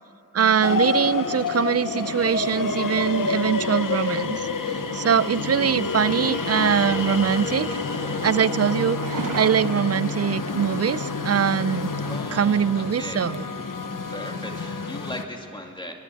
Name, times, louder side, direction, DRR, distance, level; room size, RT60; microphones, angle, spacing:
voice 1, 0.3-12.0 12.3-13.4, right 7 dB, 50° right, 19 dB, 0.5 m, -23 dB
sound 1, 0.6-15.2, left 4 dB, 80° left, 1.2 m, -28 dB
sound 2, 5.7-10.1, left 1 dB, 40° left, 6.8 m, -35 dB
sound 3, 7.3-12.4, right 4 dB, 75° right, 1.2 m, -39 dB
voice 2, 12.1-13.3 14.1-15.9, equal, 15° left, 2 dB, 2.2 m, -37 dB
24.5 x 19.5 x 9.2 m, 2.7 s
cardioid pair, 45°, 32 cm